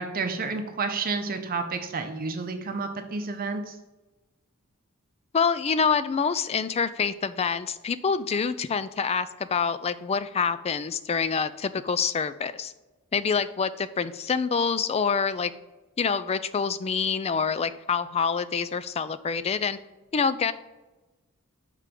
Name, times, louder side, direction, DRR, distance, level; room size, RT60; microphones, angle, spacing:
voice 1, 0.0-3.8, right 4 dB, 40° right, 6 dB, 0.7 m, -30 dB
voice 2, 5.3-12.7 13.1-15.5 16.0-19.8 20.1-20.5, left 5 dB, 30° left, 14 dB, 0.3 m, -26 dB
5.9 x 4.8 x 5.1 m, 1.1 s
head